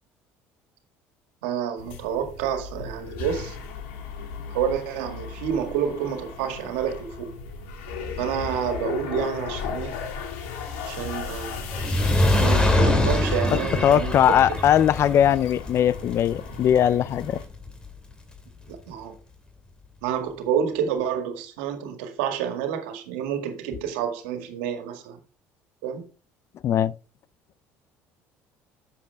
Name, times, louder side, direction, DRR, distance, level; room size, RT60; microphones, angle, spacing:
voice 1, 1.4-3.6 4.5-7.3 8.2-9.9 10.9-11.6 12.3-14.2 18.7-19.1 20.0-25.2 25.8-26.0, right 8 dB, 85° right, 1.9 m, -29 dB
sound 1, 1.8-17.4, left 6 dB, 85° left, 2.3 m, -36 dB
Fire, 11.6-18.1 18.7-18.8, left 1 dB, 15° left, 2.4 m, -24 dB
voice 2, 13.5-17.4 26.6-26.9, left 10 dB, 50° left, 0.5 m, -20 dB
10.5 x 7.2 x 3.5 m
supercardioid pair, 90°, 6 cm